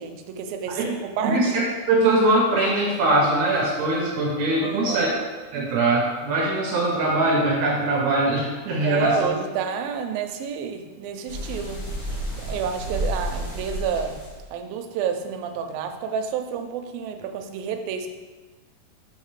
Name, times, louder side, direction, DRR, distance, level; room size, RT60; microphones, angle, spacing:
voice 1, 0.0-1.4 4.6-5.2 8.8-11.9 12.4-14.2 14.5-18.1, right 7 dB, 85° right, 6 dB, 2.4 m, -29 dB
voice 2, 1.2-5.1 5.5-9.3, right 2 dB, 70° right, -2 dB, 1.9 m, -22 dB
sound 1, 11.3-14.5, right 1 dB, 55° left, 2.8 m, -31 dB
6.5 x 5.9 x 3.2 m, 1.3 s
omnidirectional pair, 4.1 m